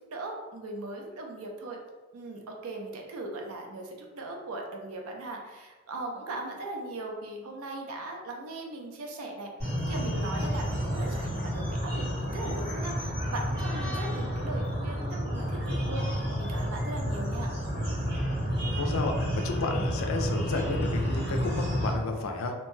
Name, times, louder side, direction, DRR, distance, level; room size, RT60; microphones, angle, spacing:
voice 1, 0.1-1.8 2.1-9.5 9.9-17.5, right 2 dB, 80° right, 1 dB, 0.5 m, -39 dB
sound 1, 9.6-21.9, equal, 50° right, 1.4 m, -30 dB
voice 2, 18.7-22.5, left 3 dB, 70° left, 4 dB, 0.4 m, -32 dB
2.7 x 2.1 x 3.1 m, 1.3 s
head